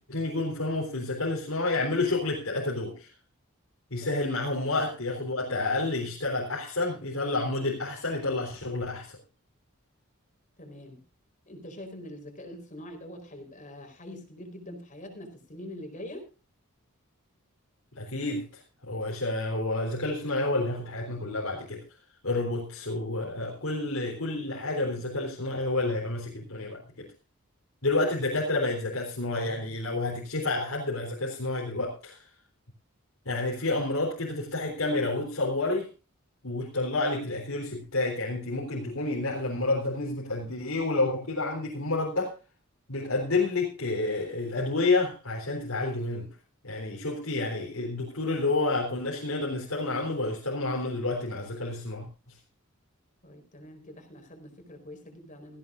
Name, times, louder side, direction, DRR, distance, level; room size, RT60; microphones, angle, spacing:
voice 1, 0.1-3.1 3.9-9.2 17.9-21.8 22.2-27.1 27.8-32.2 33.3-35.9 36.4-42.3 42.9-46.3 46.6-52.4, left 2 dB, 80° left, -2 dB, 3.8 m, -29 dB
voice 2, 10.6-11.0 11.5-16.3 53.2-55.6, left 1 dB, 35° left, 5 dB, 4.5 m, -44 dB
17.5 x 16.0 x 2.6 m, 0.31 s
head